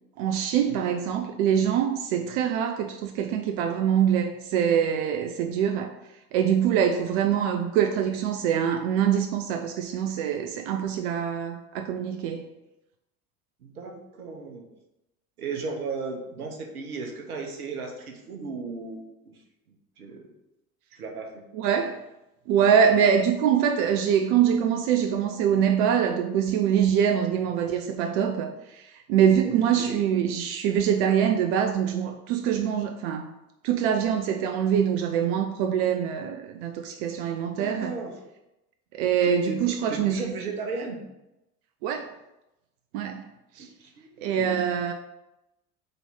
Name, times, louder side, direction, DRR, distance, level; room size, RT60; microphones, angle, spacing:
voice 1, 0.2-5.9 6.3-12.4 21.5-22.0 22.5-33.3 33.6-37.9 38.9-40.3 41.8-42.1 42.9-43.2 43.6-43.7 44.2-44.9, right 8 dB, 45° right, 5 dB, 0.6 m, -24 dB
voice 2, 13.6-14.7 15.4-19.4 19.7-20.3 20.9-21.4 29.4-30.0 37.5-38.1 39.2-39.6 39.9-41.0 43.6-44.7, right 4 dB, 75° right, 2 dB, 1.1 m, -36 dB
4.2 x 4.0 x 5.5 m, 0.93 s
figure-of-eight pair, 70°, 45 cm